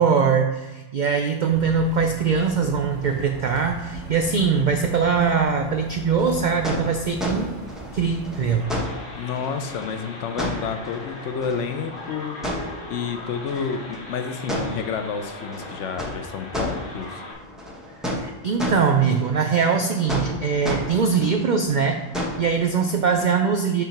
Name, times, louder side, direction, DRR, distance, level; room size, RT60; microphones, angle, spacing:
voice 1, 0.0-7.6 7.9-8.6 18.0-22.0 22.4-23.8, right 6 dB, 70° right, 4 dB, 0.4 m, -22 dB
sound 1, 1.5-8.7, right 2 dB, 40° right, 2.6 m, -39 dB
sound 2, 6.1-23.3, equal, ahead, 0.9 m, -33 dB
sound 3, 8.6-17.3, left 2 dB, 45° left, 1.3 m, -39 dB
voice 2, 9.2-12.4 12.9-17.2, left 6 dB, 70° left, 7 dB, 0.9 m, -30 dB
7.1 x 2.8 x 5.8 m, 1.1 s
omnidirectional pair, 1.3 m